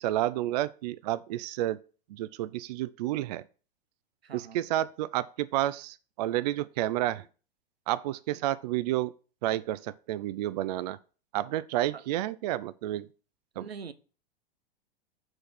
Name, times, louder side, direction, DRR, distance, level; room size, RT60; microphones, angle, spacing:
voice 1, 0.0-1.8 2.1-3.4 4.3-7.2 7.9-9.1 9.4-11.0 11.3-13.1 13.6-13.7, right 14 dB, 45° right, 0.4 m, -30 dB
voice 2, 4.2-4.6 7.2-7.3 11.9-12.0 13.5-13.9, right 6 dB, 80° right, 0.8 m, -43 dB
6.3 x 4.4 x 5.9 m
figure-of-eight pair, 100°, 30 cm